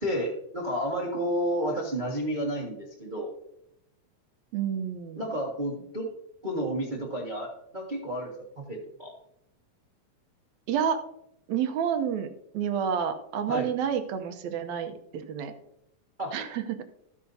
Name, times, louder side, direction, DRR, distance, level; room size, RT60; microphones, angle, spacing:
voice 1, 0.0-3.3 5.2-6.1 6.4-9.1 13.5-13.7 16.2-16.3, equal, 30° right, -2 dB, 0.8 m, -31 dB
voice 2, 4.5-5.2 10.7-11.0 11.5-12.3 12.5-15.5 16.3-16.8, right 8 dB, 75° right, 7 dB, 1.9 m, -29 dB
14.0 x 8.7 x 2.7 m, 0.77 s
omnidirectional pair, 3.7 m